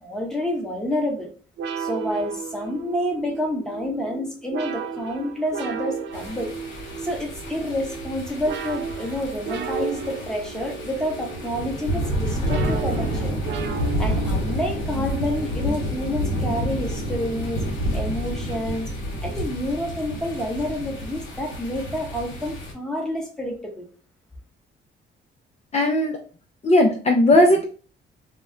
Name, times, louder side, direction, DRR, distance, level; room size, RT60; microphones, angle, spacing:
voice 1, 0.0-1.3 1.8-6.5 7.0-13.3 14.0-17.6 17.9-18.9 19.2-23.9, left 1 dB, 5° left, 0 dB, 0.9 m, -29 dB
sound 1, 1.6-17.8, right 5 dB, 60° right, 0.5 m, -34 dB
sound 2, 6.1-22.7, equal, 85° left, 0.9 m, -29 dB
voice 2, 25.7-26.2 26.6-27.6, left 1 dB, 35° left, 0 dB, 0.5 m, -17 dB
2.3 x 2.1 x 3.6 m, 0.40 s
cardioid pair, 90°, 20 cm